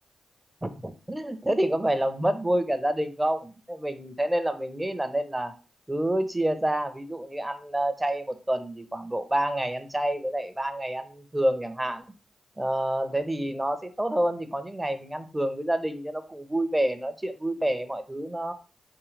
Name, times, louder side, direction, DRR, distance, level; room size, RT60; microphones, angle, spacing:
voice 1, 0.6-5.5 5.9-12.0 12.6-18.5, right 1 dB, 15° right, 8 dB, 0.7 m, -28 dB
3.7 x 2.7 x 3.2 m, 0.34 s
supercardioid pair, 45°, 0 cm